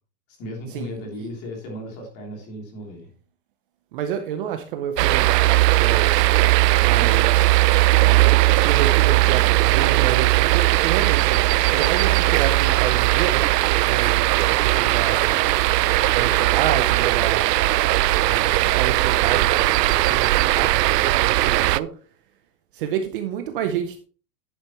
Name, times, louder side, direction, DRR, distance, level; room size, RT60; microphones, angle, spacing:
voice 1, 0.4-3.1 18.6-18.7, equal, 30° left, 1 dB, 3.1 m, -35 dB
voice 2, 3.9-6.3 6.8-13.4 13.9-15.4 16.1-17.5 18.2-21.9 22.7-24.0, right 9 dB, 35° right, 7 dB, 0.7 m, -29 dB
sound 1, 5.0-21.8, right 17 dB, 85° right, 0.6 m, -18 dB
10.5 x 8.6 x 3.0 m, 0.39 s
supercardioid pair, 170°, 48 cm